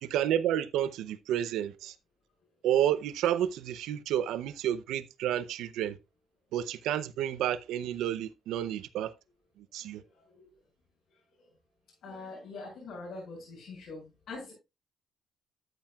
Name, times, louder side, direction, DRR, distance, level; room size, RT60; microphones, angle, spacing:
voice 1, 0.0-1.9 2.6-6.0 6.5-9.1 9.7-10.0, right 11 dB, 90° right, 0.6 m, -30 dB
voice 2, 9.9-10.5 11.4-11.5 12.0-14.5, left 3 dB, 75° left, 6.1 m, -44 dB
13.0 x 7.7 x 2.3 m
cardioid pair, 90°, 0 cm